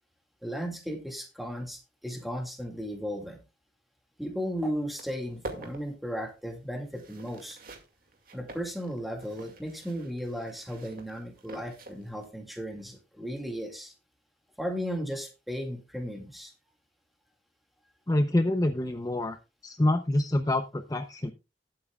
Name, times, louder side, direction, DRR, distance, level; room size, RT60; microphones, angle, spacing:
voice 1, 0.4-3.4 4.2-7.6 8.3-13.9 14.6-16.5, equal, ahead, 3 dB, 2.1 m, -35 dB
sound 1, 4.4-4.5 4.8-12.3, right 2 dB, 55° right, 2.3 m, -46 dB
voice 2, 18.1-19.4 19.6-21.3, left 1 dB, 20° left, 8 dB, 0.6 m, -26 dB
19.0 x 8.6 x 2.3 m, 0.28 s
head